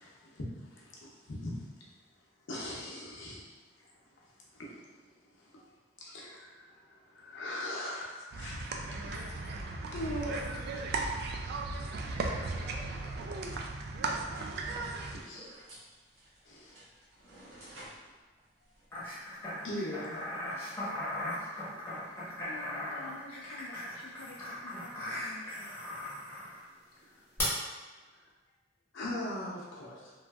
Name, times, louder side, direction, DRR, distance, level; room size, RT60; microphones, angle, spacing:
voice 1, 0.0-1.7 2.5-3.4 3.8-3.9 4.2-4.3 4.5-4.9 5.3-5.7 6.0-8.6 9.1-9.5 9.9-10.8 15.1-15.5 16.5-16.7 17.7-17.9 19.6-20.2 21.6-22.1 27.0-27.2 28.9-30.1, left 1 dB, 90° left, -4 dB, 0.7 m, -41 dB
sound 1, 8.3-15.2, right 3 dB, 60° right, 0.3 m, -36 dB
voice 2, 12.1-14.4 15.3-15.5, equal, 15° right, -7 dB, 0.6 m, -51 dB
sound 2, 14.2-19.5, right 1 dB, 85° right, 1.1 m, -55 dB
sound 3, 18.9-26.6 27.4-27.5, left 1 dB, 15° left, 0.8 m, -39 dB
voice 3, 22.4-25.8 28.0-28.1, left 3 dB, 65° left, 0 dB, 0.3 m, -51 dB
3.1 x 2.5 x 2.3 m, 1.3 s
head